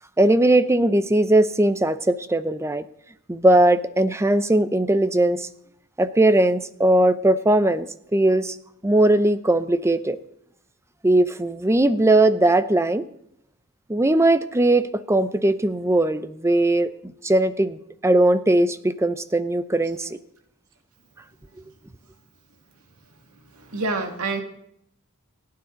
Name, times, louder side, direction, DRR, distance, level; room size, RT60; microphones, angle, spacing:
voice 1, 0.2-2.8 3.3-5.5 6.0-7.9 8.1-8.6 8.8-10.2 11.0-13.1 13.9-20.2, right 1 dB, 10° right, 12 dB, 0.7 m, -19 dB
voice 2, 23.5-24.4, right 3 dB, 70° right, 4 dB, 2.2 m, -27 dB
29.0 x 9.6 x 4.0 m, 0.75 s
head